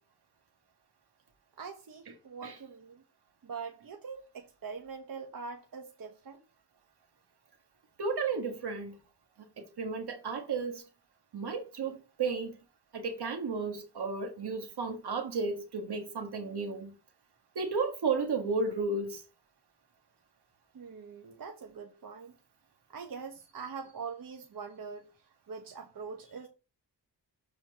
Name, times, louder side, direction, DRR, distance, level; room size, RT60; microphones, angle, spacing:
voice 1, 1.6-3.0 3.4-6.4 20.7-22.3 22.9-26.5, right 5 dB, 55° right, 1.1 m, -43 dB
voice 2, 8.0-9.0 9.6-10.8 11.3-12.6 12.9-16.9 17.6-19.2, right 4 dB, 70° right, 1.7 m, -33 dB
6.9 x 4.3 x 6.5 m
cardioid pair, 80°, 40 cm